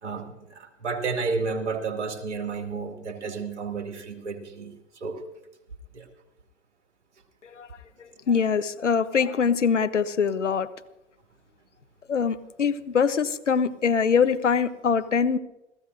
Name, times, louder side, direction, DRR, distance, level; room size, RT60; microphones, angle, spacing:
voice 1, 0.0-4.7 5.0-5.2 5.9-6.1, right 4 dB, 70° right, 4 dB, 2.3 m, -31 dB
voice 2, 8.0-10.7 12.1-15.4, left 6 dB, 80° left, 12 dB, 0.9 m, -23 dB
27.5 x 15.5 x 2.6 m, 0.91 s
figure-of-eight pair, 100°, 36 cm